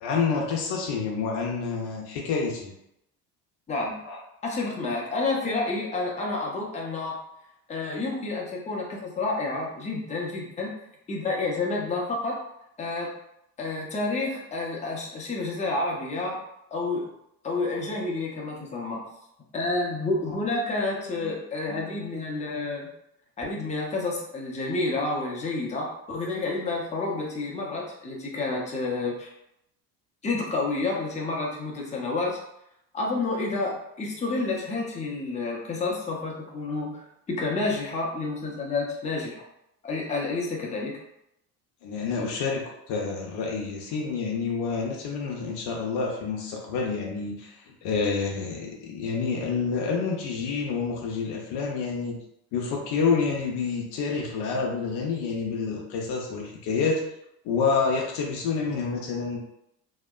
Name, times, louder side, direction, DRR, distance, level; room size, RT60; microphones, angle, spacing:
voice 1, 0.0-2.7 4.1-4.2 41.8-52.2 52.5-57.0 57.4-59.4, left 5 dB, 55° left, -1 dB, 0.7 m, -28 dB
voice 2, 3.7-4.0 4.4-7.2 7.7-10.7 11.1-12.4 12.8-13.1 13.6-16.4 16.7-17.1 17.4-19.0 19.5-22.9 23.4-29.3 30.2-32.4 32.9-36.9 37.3-39.4 39.8-41.0, left 3 dB, 15° left, -3 dB, 0.7 m, -29 dB
2.8 x 2.1 x 2.4 m, 0.80 s
hypercardioid pair, 65°, 47 cm